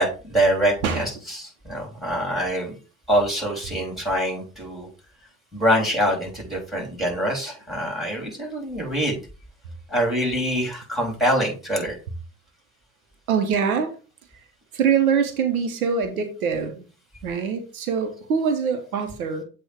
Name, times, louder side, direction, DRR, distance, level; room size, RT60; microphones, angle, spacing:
voice 1, 0.0-2.8 3.1-4.9 5.5-9.2 9.9-12.0, equal, ahead, 0 dB, 3.5 m, -24 dB
voice 2, 13.3-13.9 14.3-14.4 14.7-16.8 17.2-19.4, right 6 dB, 85° right, 6 dB, 1.1 m, -24 dB
7.8 x 2.7 x 4.9 m, 0.35 s
hypercardioid pair, 75°, 42 cm